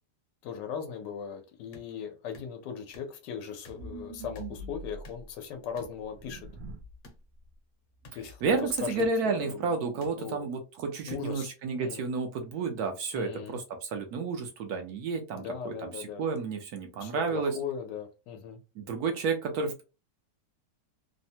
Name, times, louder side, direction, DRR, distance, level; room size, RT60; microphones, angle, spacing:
voice 1, 0.4-6.5 8.1-8.4 8.8-10.5 11.1-11.5 11.7-12.1 13.1-13.6 15.3-16.2 17.0-18.6, left 7 dB, 80° left, 1.2 m, -39 dB
sound 1, 1.7-1.9 2.3-2.5 2.9-3.1 3.6-3.8 4.4-4.5 5.0-5.3 5.8-6.0 7.0-7.2 8.0-8.2 9.0-9.1 10.0-10.1 11.1-11.2, left 3 dB, 55° left, 0.9 m, -49 dB
sound 2, 3.8-5.3 6.0-7.0 7.4-7.5 7.9-8.8, right 2 dB, 90° right, 0.6 m, -44 dB
voice 2, 8.4-17.6 18.8-19.8, right 4 dB, 70° right, 1.0 m, -31 dB
3.2 x 2.1 x 2.7 m
omnidirectional pair, 1.9 m